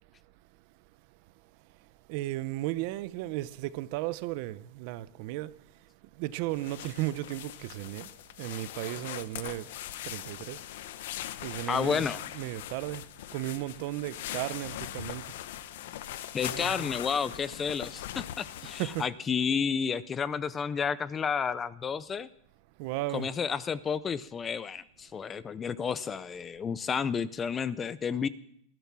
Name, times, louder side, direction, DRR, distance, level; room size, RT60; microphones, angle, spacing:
voice 1, 2.1-5.6 6.1-9.7 10.0-10.7 11.4-15.3 16.5-16.9 18.8-19.0 22.8-23.3, right 16 dB, 45° right, 0.7 m, -35 dB
sound 1, 6.5-19.1, left 13 dB, 65° left, 0.8 m, -41 dB
voice 2, 11.7-12.2 16.3-22.3 23.1-28.3, left 6 dB, 15° left, 0.5 m, -31 dB
18.5 x 12.5 x 6.1 m
supercardioid pair, 165°, 0 cm